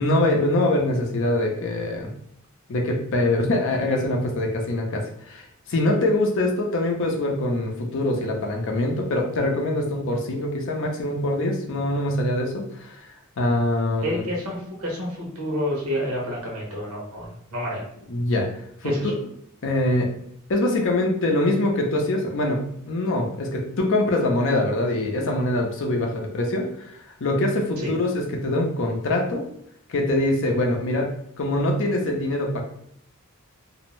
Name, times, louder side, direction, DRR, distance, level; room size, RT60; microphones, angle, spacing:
voice 1, 0.0-2.1 2.7-14.2 18.1-18.5 18.8-19.0 19.6-20.1 20.5-29.5 29.9-31.1 31.4-32.6, left 1 dB, 55° left, 2 dB, 0.5 m, -24 dB
voice 2, 14.0-17.8 18.8-19.1 27.8-27.9, equal, 75° right, -3 dB, 0.9 m, -29 dB
2.6 x 2.0 x 3.0 m, 0.68 s
head